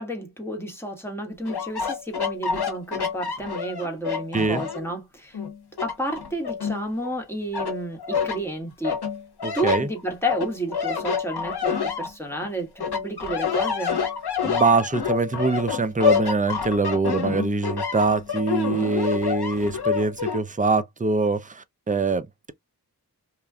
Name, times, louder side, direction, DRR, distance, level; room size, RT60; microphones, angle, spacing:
voice 1, 0.0-5.4 5.8-9.0 9.5-14.0, right 1 dB, 5° left, 1.4 m, -31 dB
sound 1, 1.5-4.9 5.3-7.1 7.5-8.4 8.8-12.5 12.8-20.4, left 6 dB, 85° left, 0.9 m, -27 dB
voice 2, 9.4-9.9 14.4-22.5, right 4 dB, 20° right, 0.4 m, -24 dB
3.0 x 2.4 x 2.3 m
wide cardioid pair, 50°, 38 cm